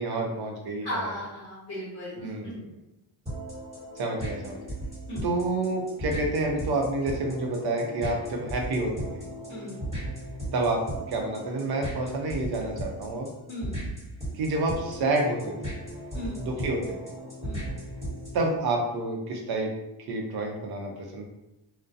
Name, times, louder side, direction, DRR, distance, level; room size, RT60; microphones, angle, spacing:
voice 1, 0.0-1.1 2.1-2.6 4.0-4.7 5.2-9.2 10.5-13.3 14.3-15.7 16.4-17.0 18.3-19.7 20.1-21.3, right 2 dB, 55° right, 1 dB, 0.6 m, -29 dB
voice 2, 0.8-2.7 5.1-5.2 9.5-10.0 13.5-13.8 16.1-16.5 17.4-17.8, equal, 35° left, -8 dB, 0.9 m, -36 dB
sound 1, 3.3-18.5, right 1 dB, 15° right, 1.3 m, -37 dB
2.3 x 2.1 x 2.6 m, 0.92 s
cardioid pair, 125°, 47 cm